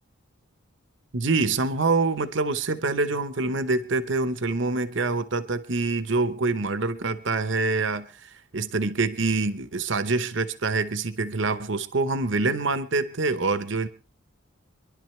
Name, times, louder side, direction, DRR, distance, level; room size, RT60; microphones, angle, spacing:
voice 1, 1.1-13.9, right 3 dB, 60° right, 12 dB, 0.9 m, -26 dB
26.0 x 11.5 x 3.2 m, 0.36 s
head